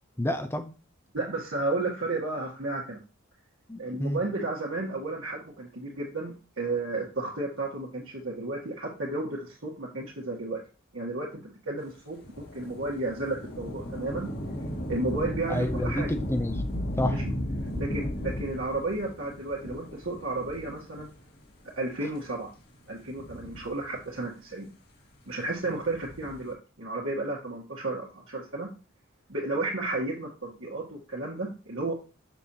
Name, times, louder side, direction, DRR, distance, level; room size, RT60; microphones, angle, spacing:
voice 1, 0.2-0.7 3.7-4.2 15.5-16.7 17.0-17.2, left 1 dB, 10° left, 0.6 m, -30 dB
voice 2, 1.1-3.0 3.8-10.6 10.9-14.3 14.9-16.1 17.1-17.3 17.8-21.1 21.8-22.5 22.9-24.7 25.3-28.7 29.3-31.9, right 2 dB, 70° right, 1.8 m, -33 dB
Thunder / Rain, 12.2-21.2 21.9-22.0 22.9-24.2 25.7-26.5, equal, 50° left, 1.9 m, -35 dB
7.0 x 6.4 x 2.9 m
head